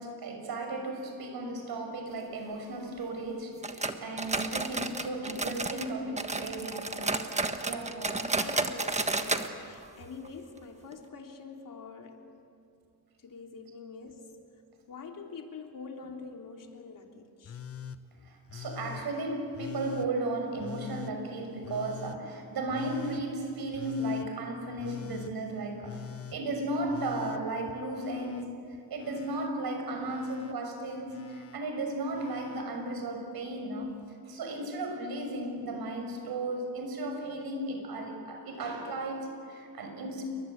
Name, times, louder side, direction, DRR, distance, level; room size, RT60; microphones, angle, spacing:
voice 1, 0.0-7.1 7.6-8.3 18.3-26.0 26.3-28.6 28.9-33.9 34.3-40.2, right 2 dB, 75° right, 4 dB, 6.3 m, -35 dB
sound 1, 3.6-5.9 6.2-9.5 9.8-9.9 10.2-10.3 10.9-11.0, right 3 dB, 20° right, 1.4 m, -32 dB
voice 2, 8.4-12.3 13.2-14.3 14.9-17.6, left 4 dB, 55° left, 2 dB, 3.2 m, -45 dB
Telephone, 17.4-18.0 18.5-19.0 19.5-20.1 20.6-21.1 21.6-22.2 22.7-23.2 23.7-24.3 24.8-25.3 25.8-26.4 26.9-28.4 28.7-29.5 30.0-30.5 31.1-31.6 32.1-32.6 33.8-33.9, left 8 dB, 35° left, 1.1 m, -44 dB
29.0 x 23.0 x 8.1 m, 2.5 s
cardioid pair, 120°, 38 cm